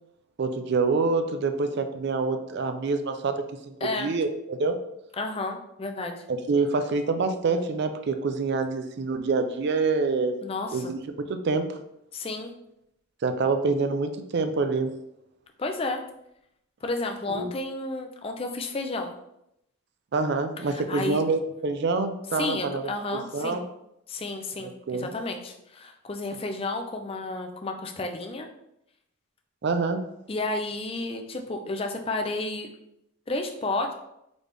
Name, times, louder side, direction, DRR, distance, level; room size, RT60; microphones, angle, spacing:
voice 1, 0.4-4.8 6.3-10.3 10.7-11.8 13.2-14.9 17.3-17.5 20.1-23.6 24.6-25.1 29.6-30.0, right 4 dB, 55° right, 8 dB, 0.4 m, -26 dB
voice 2, 3.8-4.1 5.2-6.2 10.4-10.9 12.1-12.5 15.6-16.0 16.8-19.1 20.7-21.2 22.4-23.6 24.1-28.5 30.3-32.7 33.3-33.9, left 2 dB, 25° left, 4 dB, 0.4 m, -31 dB
4.1 x 3.3 x 3.3 m, 0.81 s
head